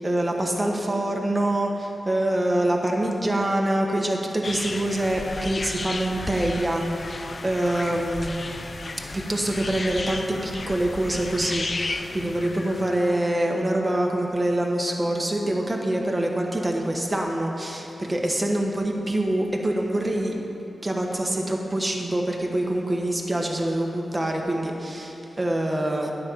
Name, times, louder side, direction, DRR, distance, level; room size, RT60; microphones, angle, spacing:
voice 1, 0.0-8.3 9.1-20.3 20.8-26.1, right 1 dB, 25° right, 0 dB, 1.5 m, -25 dB
sound 1, 4.4-13.2, left 3 dB, 50° left, 0.6 m, -34 dB
9.6 x 5.5 x 7.4 m, 2.9 s
cardioid pair, 45°, 0 cm